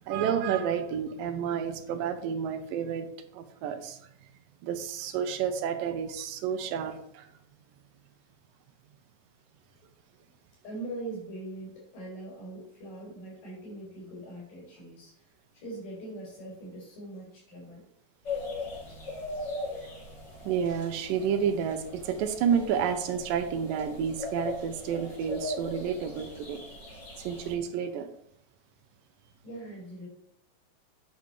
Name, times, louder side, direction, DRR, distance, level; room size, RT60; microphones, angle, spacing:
voice 1, 0.0-3.1 3.4-4.0 4.6-7.2 20.5-26.6 27.2-28.1, right 7 dB, 85° right, 8 dB, 2.6 m, -30 dB
voice 2, 10.6-17.8 29.4-30.1, right 2 dB, 85° left, -6 dB, 5.9 m, -42 dB
sound 1, 18.3-27.5, left 2 dB, 35° left, 2.2 m, -39 dB
9.6 x 8.4 x 3.2 m, 0.68 s
omnidirectional pair, 3.9 m